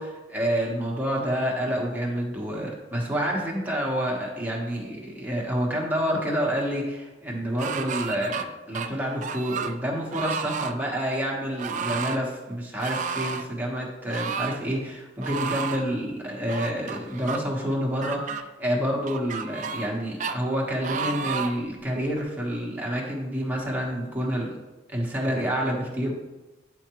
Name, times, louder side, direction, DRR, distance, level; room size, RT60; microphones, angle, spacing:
voice 1, 0.0-24.5 24.9-26.1, equal, 10° right, -3 dB, 1.3 m, -28 dB
sound 1, 7.6-8.4 8.7-9.7 10.1-10.7 11.6-12.2 12.8-13.5 14.1-14.6 15.2-15.8 16.5-17.4 18.0-18.4 19.1-19.9 20.2-20.4 20.8-21.6 22.2-22.3, right 5 dB, 40° right, 0.4 m, -31 dB
9.5 x 4.6 x 3.0 m, 1.1 s
head